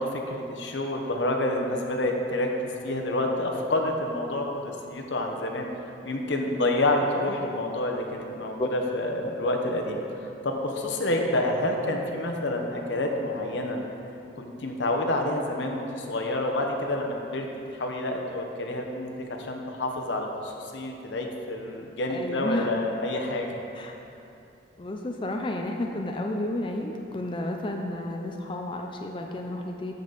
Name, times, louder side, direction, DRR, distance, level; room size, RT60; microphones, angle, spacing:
voice 1, 0.0-2.5 2.8-5.7 6.0-13.8 14.4-17.5 17.7-23.6, left 1 dB, 85° left, 2 dB, 1.0 m, -28 dB
voice 2, 22.1-22.7 23.7-23.9 24.8-29.9, left 1 dB, 25° left, 2 dB, 0.4 m, -31 dB
13.0 x 5.2 x 4.1 m, 2.8 s
head